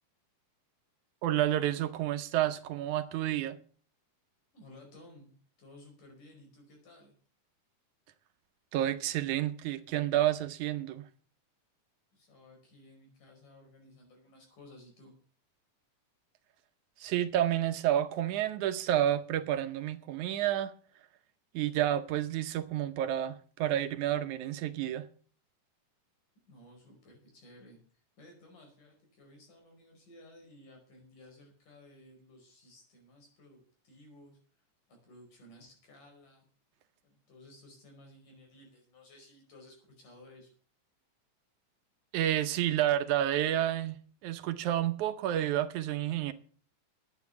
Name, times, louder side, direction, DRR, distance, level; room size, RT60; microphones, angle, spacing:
voice 1, 1.2-3.6 8.7-11.0 17.0-20.7 21.5-25.1 42.1-44.0 44.2-46.3, right 12 dB, 75° right, 2.1 m, -30 dB
voice 2, 4.5-7.1 12.1-15.1 26.5-27.8 28.2-34.4 34.9-36.5 37.0-40.5, left 1 dB, 75° left, 6.7 m, -56 dB
12.0 x 9.3 x 7.1 m
omnidirectional pair, 3.7 m